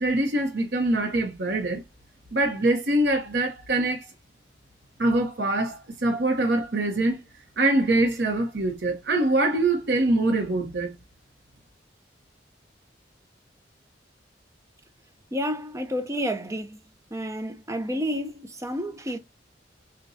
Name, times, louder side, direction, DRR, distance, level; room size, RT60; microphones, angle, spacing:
voice 1, 0.0-1.8 2.3-4.1 5.0-7.2 7.6-10.9, right 2 dB, 65° right, 0.9 m, -24 dB
voice 2, 15.3-16.8 17.1-19.2, equal, 15° right, 0.6 m, -30 dB
6.5 x 2.2 x 2.6 m
head